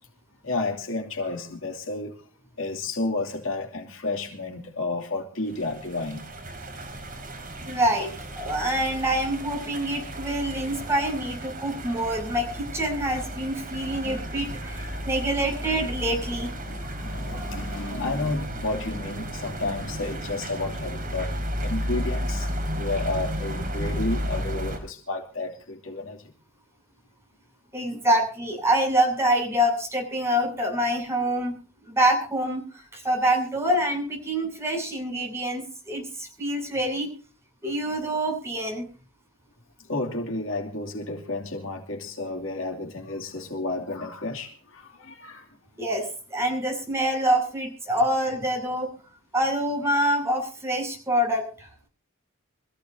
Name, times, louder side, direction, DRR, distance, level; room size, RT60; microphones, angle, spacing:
voice 1, 0.4-2.2 2.6-6.2 14.0-14.2 14.6-15.0 16.7-21.3 21.6-26.3 27.9-28.0 37.9-38.0 39.9-45.6, left 2 dB, 65° left, 2.8 m, -31 dB
sound 1, 5.5-24.8, equal, 40° right, 5.1 m, -33 dB
voice 2, 7.7-16.5 27.7-31.6 31.9-37.1 37.6-38.9 45.8-48.9 49.3-51.7, right 1 dB, 10° right, 7.9 m, -26 dB
25.5 x 15.5 x 2.8 m
head